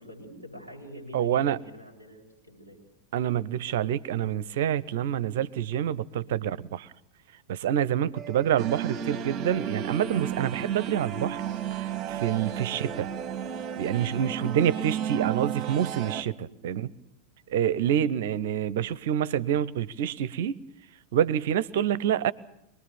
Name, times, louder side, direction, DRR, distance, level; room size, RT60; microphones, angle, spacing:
voice 1, 0.0-2.8 6.2-6.5 12.7-12.9 16.4-16.6 17.8-18.0, equal, 85° left, 7.3 m, -46 dB
voice 2, 1.1-1.6 3.1-6.9 7.5-11.4 11.7-13.1 13.8-16.9 17.5-20.6 21.1-22.3, right 10 dB, 55° right, 0.7 m, -27 dB
sound 1, 8.1-12.0, right 7 dB, 10° right, 2.0 m, -50 dB
sound 2, 8.6-16.2, right 8 dB, 30° right, 1.3 m, -33 dB
23.5 x 20.0 x 7.1 m
figure-of-eight pair, 90°, 0 cm